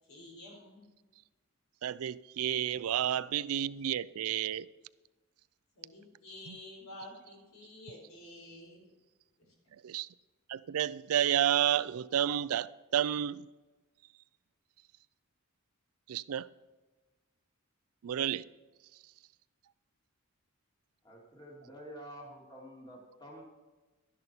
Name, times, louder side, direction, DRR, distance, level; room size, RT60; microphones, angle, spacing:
voice 1, 0.1-0.8 5.8-8.9, left 1 dB, 70° left, 4.2 m, -50 dB
voice 2, 1.8-4.7 6.5-6.6 9.8-10.1 10.5-13.5 16.1-16.5 18.0-18.5, right 10 dB, 80° right, 0.4 m, -31 dB
voice 3, 21.0-23.4, equal, 20° left, 2.5 m, -49 dB
12.0 x 11.0 x 4.3 m
head